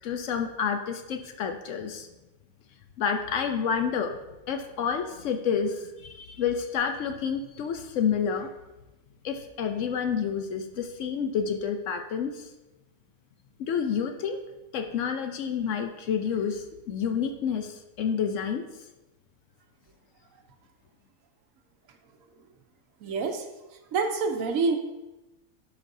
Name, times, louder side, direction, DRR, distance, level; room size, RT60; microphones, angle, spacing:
voice 1, 0.0-2.1 3.0-4.2 4.5-8.5 9.2-12.5 13.6-14.4 14.7-18.6, left 7 dB, 65° left, 6 dB, 0.9 m, -29 dB
voice 2, 23.0-23.4 23.9-24.8, right 4 dB, 70° right, 6 dB, 1.1 m, -26 dB
12.0 x 5.2 x 2.6 m, 1.0 s
omnidirectional pair, 1.5 m